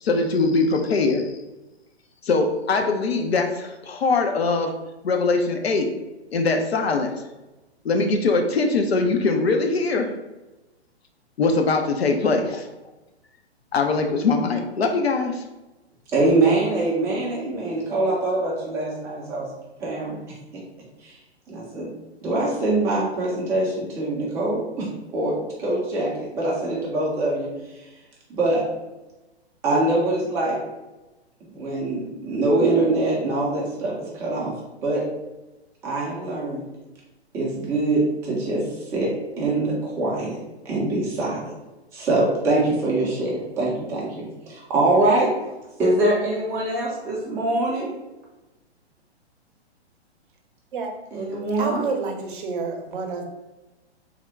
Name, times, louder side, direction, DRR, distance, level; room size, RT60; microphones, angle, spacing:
voice 1, 0.0-1.2 2.2-4.7 5.0-5.9 6.3-7.1 7.8-10.1 11.4-12.7 13.7-15.4, left 3 dB, 65° left, 0.5 m, -22 dB
voice 2, 16.1-19.5 19.8-20.2 21.0-21.2 21.5-21.9 22.2-27.8 28.3-28.6 29.6-30.6 31.5-34.5 34.8-35.0 35.8-36.6 37.3-39.1 39.4-40.3 40.6-41.5 41.9-45.3 45.8-47.9 51.1-51.8, right 2 dB, 10° right, 0.4 m, -23 dB
voice 3, 51.6-53.2, right 4 dB, 50° right, 0.7 m, -28 dB
3.5 x 2.1 x 3.4 m
figure-of-eight pair, 120°, 33 cm